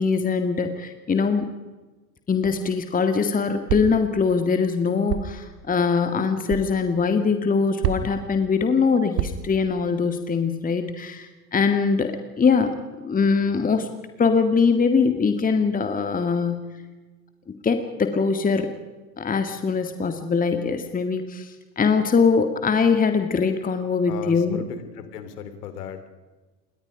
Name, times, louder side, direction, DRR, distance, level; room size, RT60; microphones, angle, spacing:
voice 1, 0.0-1.5 2.3-12.8 13.0-13.9 14.2-16.6 17.6-18.7 19.2-24.6, left 5 dB, 15° left, 7 dB, 2.0 m, -22 dB
sound 1, 2.4-2.8 3.7-4.1 5.1-5.4 6.5-6.7 7.8-8.3 9.2-9.6, right 11 dB, 50° right, 1.7 m, -28 dB
voice 2, 24.1-26.1, left 8 dB, 65° left, 10 dB, 3.4 m, -36 dB
28.0 x 22.5 x 5.1 m, 1.2 s
figure-of-eight pair, 85°, 50 cm